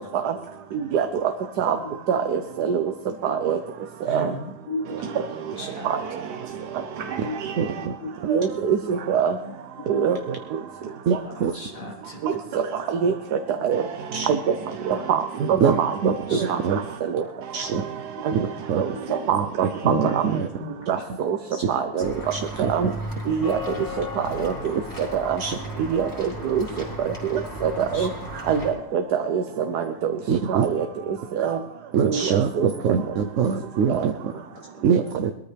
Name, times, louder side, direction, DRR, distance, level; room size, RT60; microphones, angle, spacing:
voice 1, 0.7-1.1 1.6-1.8 2.1-2.9 3.2-3.6 4.0-4.3 5.8-6.0 7.4-7.5 8.3-9.3 9.9-10.2 11.1-11.2 12.2-13.1 13.6-13.9 14.3-14.5 14.8-16.8 17.1-17.2 18.2-18.3 18.8-19.7 20.0-20.4 20.9-21.0 21.2-21.4 21.7-22.0 22.7-22.9 23.3-23.6 24.3-24.7 25.1-25.4 25.9-26.6 27.0-28.1 28.5-29.4 29.7-30.1 30.5-30.9 31.3-31.6 32.0-32.7 33.9-34.1, right 7 dB, 80° right, 7 dB, 1.4 m, -24 dB
voice 2, 4.1-5.2 5.6-6.0 7.0-7.4 7.8-8.1 9.4-9.5 9.8-9.9 11.3-12.2 14.9-15.1 16.3-16.6 18.9-19.3 19.8-20.2 20.6-20.7 21.5-21.7 21.9-22.0 23.4-23.5 27.8-28.1 34.5-34.6, left 2 dB, 60° left, -2 dB, 2.0 m, -35 dB
voice 3, 7.6-7.9 11.1-11.5 14.1-14.3 15.6-16.8 17.5-17.8 18.3-18.4 18.7-18.8 19.3-19.5 19.8-20.5 22.0-22.9 25.4-25.6 30.3-30.7 31.9-34.3 34.8-35.3, right 7 dB, 60° right, 6 dB, 0.9 m, -24 dB
Walk footsteps / Bell, 22.0-28.7, left 1 dB, 10° left, 4.2 m, -35 dB
21.5 x 13.5 x 3.4 m, 0.82 s
omnidirectional pair, 1.7 m